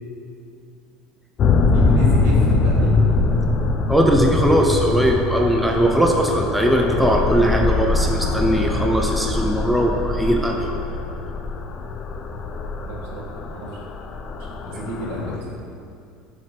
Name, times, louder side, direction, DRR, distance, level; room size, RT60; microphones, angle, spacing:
sound 1, 1.4-15.4, left 3 dB, 30° left, 0.7 m, -22 dB
voice 1, 1.4-3.0 12.8-13.8 14.4-15.4, right 1 dB, 75° right, -4 dB, 2.9 m, -31 dB
voice 2, 3.9-10.8, right 1 dB, ahead, 1 dB, 0.7 m, -19 dB
14.5 x 8.5 x 3.4 m, 2.4 s
cardioid pair, 160°, 0 cm